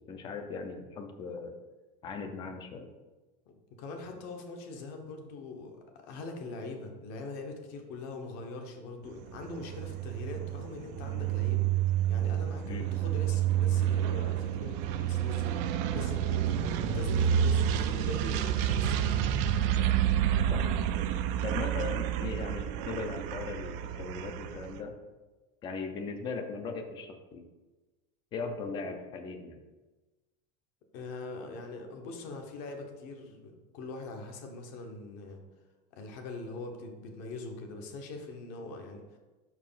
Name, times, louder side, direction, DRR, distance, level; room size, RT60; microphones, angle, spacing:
voice 1, 0.1-1.5 2.0-2.9 12.7-12.9 17.8-17.9 20.5-20.7 21.4-25.0 25.6-27.4 28.3-29.6, left 4 dB, 20° left, 7 dB, 0.5 m, -38 dB
voice 2, 3.8-11.7 12.1-16.6 16.9-18.9 30.9-35.4 35.9-39.0, left 3 dB, 45° left, 4 dB, 1.2 m, -42 dB
sound 1, 9.1-24.8, right 10 dB, 35° right, 0.4 m, -29 dB
5.9 x 4.8 x 5.6 m, 1.2 s
supercardioid pair, 180°, 21 cm